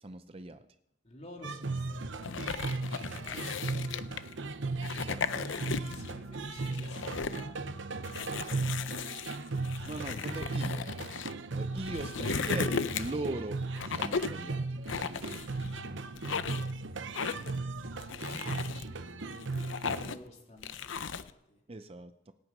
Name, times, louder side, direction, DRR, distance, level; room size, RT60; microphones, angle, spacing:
voice 1, 0.0-0.6 5.0-5.2 9.9-10.9 11.5-13.6 13.9-14.8 21.7-22.3, right 2 dB, 30° right, 10 dB, 0.6 m, -39 dB
voice 2, 1.0-4.6 5.3-8.9 9.6-11.0 16.0-16.4 18.2-21.6, left 1 dB, 35° left, 1 dB, 3.0 m, -54 dB
sound 1, 1.4-20.2, right 3 dB, 75° right, 0.9 m, -37 dB
sound 2, 2.2-4.3 4.8-6.1 6.5-7.4 8.0-11.3 11.8-13.3 13.8-14.4 14.9-15.8 16.1-16.7 17.1-17.6 18.0-18.8 19.3-20.3 20.6-21.3, left 5 dB, 80° left, 0.7 m, -36 dB
26.0 x 9.0 x 5.4 m, 0.82 s
head